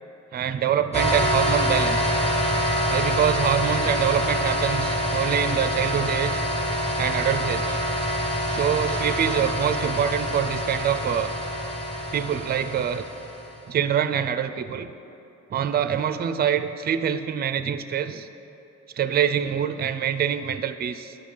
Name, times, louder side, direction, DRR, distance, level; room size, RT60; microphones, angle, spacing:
voice 1, 0.3-2.2 2.9-6.4 7.0-7.8 8.5-11.3 12.1-13.0 13.7-14.9 15.5-18.3 19.0-21.2, right 8 dB, 35° right, 11 dB, 0.4 m, -25 dB
sound 1, 0.9-13.5, equal, 20° left, 1.5 m, -26 dB
9.7 x 5.3 x 5.1 m, 2.8 s
cardioid pair, 90°, 30 cm